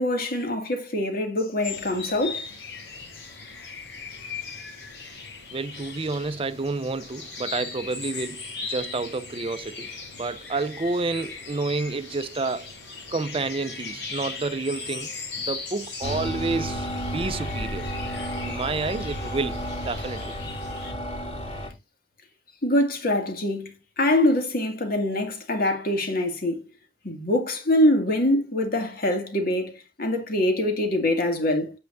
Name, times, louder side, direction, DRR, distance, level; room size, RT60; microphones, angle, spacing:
voice 1, 0.0-2.5 22.6-26.6 27.0-31.7, left 1 dB, 55° left, 2.3 m, -24 dB
sound 1, 1.6-20.9, left 4 dB, 85° left, 5.6 m, -38 dB
voice 2, 5.5-9.9 10.2-12.7 13.1-15.1 15.4-16.9 17.1-17.9 18.4-19.6 19.9-20.3, right 3 dB, 30° right, 0.5 m, -29 dB
sound 2, 16.0-21.7, equal, 40° left, 3.3 m, -32 dB
9.3 x 7.9 x 2.6 m
head